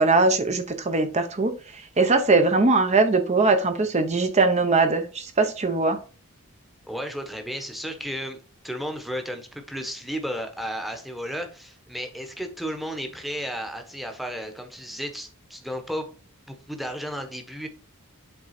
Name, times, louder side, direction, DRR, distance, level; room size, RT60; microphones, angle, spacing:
voice 1, 0.0-1.5 2.0-6.0, right 3 dB, 30° right, 0.7 m, -21 dB
voice 2, 6.8-8.4 8.6-16.1 16.5-17.7, equal, ahead, 1.0 m, -33 dB
8.0 x 3.7 x 4.2 m
head